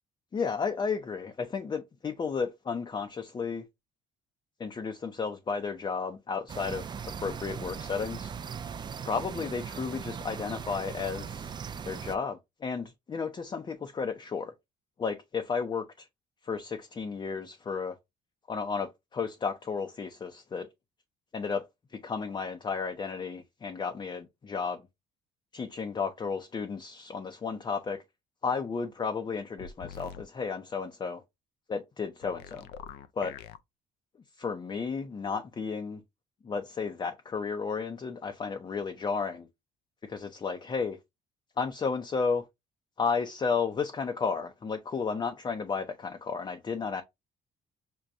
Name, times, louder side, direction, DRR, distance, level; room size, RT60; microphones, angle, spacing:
voice 1, 0.3-3.6 4.6-6.9 7.2-8.3 9.0-11.5 11.8-14.5 15.0-16.1 16.4-18.0 18.5-20.7 21.3-21.6 22.0-24.8 25.5-28.0 28.4-31.2 31.7-32.7 33.2-33.3 34.4-36.0 36.4-39.5 40.1-41.0 41.6-42.4 43.0-47.0, left 5 dB, 25° left, 0.6 m, -33 dB
sound 1, 6.5-12.2, right 7 dB, 25° right, 0.3 m, -39 dB
sound 2, 29.6-30.2 32.2-33.6, left 8 dB, 80° left, 0.5 m, -44 dB
6.0 x 2.2 x 2.5 m
cardioid pair, 110°, 17 cm